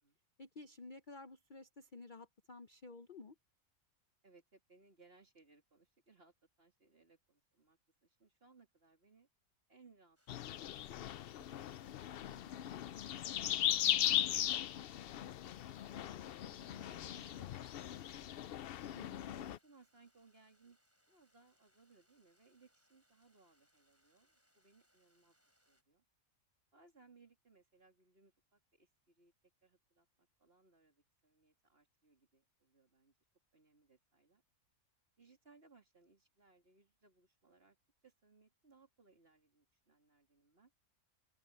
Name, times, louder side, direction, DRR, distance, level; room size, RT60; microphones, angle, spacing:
voice 1, 0.4-3.3 18.9-19.3, left 3 dB, 40° left, 0.8 m, -53 dB
voice 2, 4.2-9.3 9.7-11.0 11.4-16.0 16.4-17.7 18.0-18.4 19.3-20.8 21.1-25.4 25.6-26.0 26.7-29.3 29.6-33.1 33.5-34.4 35.2-37.8 38.0-40.7, right 3 dB, 40° right, 3.4 m, -67 dB
sound 1, 10.2-25.8, equal, 10° right, 7.4 m, -76 dB
sound 2, 10.3-19.6, left 11 dB, 85° left, 0.5 m, -38 dB
open air
omnidirectional pair, 1.6 m